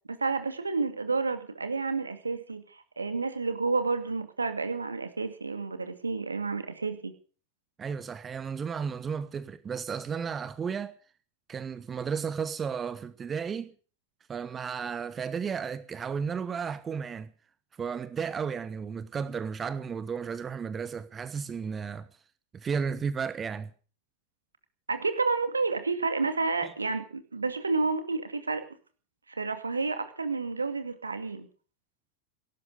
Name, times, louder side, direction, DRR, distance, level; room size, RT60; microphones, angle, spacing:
voice 1, 0.0-7.1 24.9-28.7 29.3-31.5, right 4 dB, 80° right, 2.3 m, -30 dB
voice 2, 7.8-11.0 11.5-13.7 14.3-17.3 17.8-22.1 22.5-23.7 26.6-26.7, right 6 dB, 20° right, 1.0 m, -33 dB
17.5 x 12.0 x 6.6 m
figure-of-eight pair, 90°, 0 cm